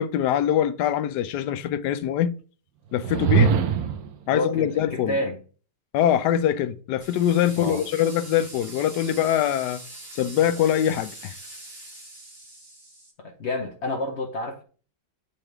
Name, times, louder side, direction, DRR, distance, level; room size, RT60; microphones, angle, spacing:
voice 1, 0.0-2.3 2.9-3.5 4.3-5.1 5.9-9.8 10.1-11.3, left 10 dB, 75° left, 1.1 m, -23 dB
sound 1, 3.0-4.1, right 7 dB, 65° right, 1.0 m, -21 dB
voice 2, 4.3-5.4 7.6-7.9 13.2-14.6, left 2 dB, 55° left, 0.8 m, -29 dB
sound 2, 7.0-13.1, right 2 dB, 35° right, 1.6 m, -43 dB
7.0 x 3.4 x 4.5 m
omnidirectional pair, 1.9 m